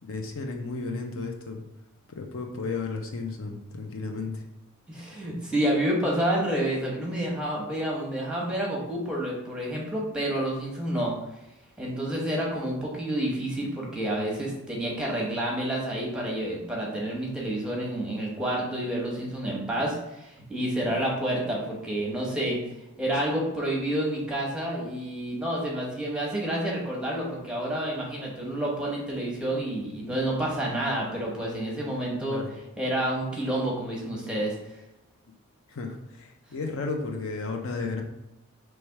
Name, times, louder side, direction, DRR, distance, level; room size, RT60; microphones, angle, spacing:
voice 1, 0.0-1.6 2.1-4.4 20.8-21.2 32.3-32.5 35.7-38.0, left 3 dB, 60° left, 3 dB, 0.5 m, -33 dB
voice 2, 4.9-11.1 11.8-22.6 23.0-32.4 32.8-34.8, right 1 dB, 5° right, -3 dB, 1.0 m, -29 dB
3.3 x 3.1 x 4.6 m, 0.91 s
head